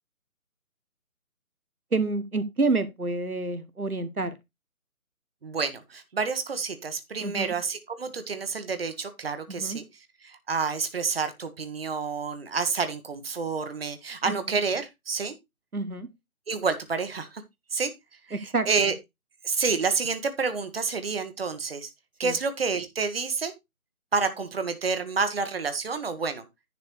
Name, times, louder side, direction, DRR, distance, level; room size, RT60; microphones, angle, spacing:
voice 1, 1.9-4.3 7.2-7.5 9.5-9.8 14.3-14.4 15.7-16.1 18.3-18.7 22.2-22.3, right 3 dB, 90° right, 1.5 m, -28 dB
voice 2, 5.4-9.8 10.2-15.3 16.5-17.4 17.7-17.9 18.3-18.9 19.4-21.9 22.2-23.5 24.1-26.4, right 5 dB, 45° right, 1.4 m, -29 dB
10.5 x 4.8 x 4.7 m
figure-of-eight pair, 150°, 43 cm